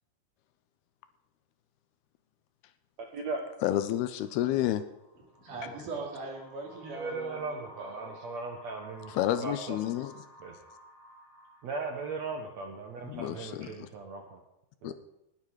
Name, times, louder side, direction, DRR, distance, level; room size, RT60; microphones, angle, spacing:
voice 1, 3.6-4.8 9.1-10.1 13.1-13.9 14.8-14.9, left 12 dB, 80° left, 11 dB, 2.4 m, -30 dB
sound 1, 4.0-13.4, equal, 50° left, 3.4 m, -55 dB
voice 2, 5.4-8.3, right 3 dB, 50° right, 1 dB, 3.9 m, -41 dB
voice 3, 6.8-9.1 9.4-9.8 10.4-10.5 11.6-14.4 14.8-14.9, right 4 dB, 75° right, 3 dB, 1.6 m, -37 dB
19.0 x 9.1 x 4.8 m, 0.89 s
omnidirectional pair, 4.9 m